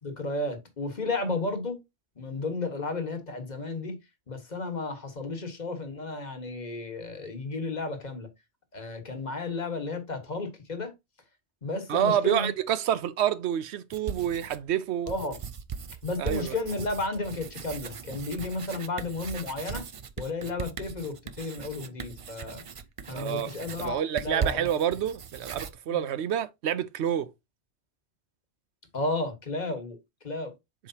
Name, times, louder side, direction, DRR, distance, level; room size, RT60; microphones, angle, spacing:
voice 1, 0.0-1.8 2.2-4.0 4.3-8.3 8.7-10.9 11.6-12.5 15.1-15.4 16.0-19.8 20.2-22.6 23.1-24.7 25.9-26.0 28.9-30.0 30.2-30.5, left 2 dB, 40° left, 1.4 m, -33 dB
voice 2, 11.9-15.1 16.2-16.5 23.1-23.5 23.8-27.3, right 10 dB, 85° right, 0.9 m, -28 dB
sound 1, 13.9-14.7 15.1-25.7, right 6 dB, 45° right, 0.5 m, -38 dB
7.6 x 4.9 x 2.8 m
omnidirectional pair, 1.1 m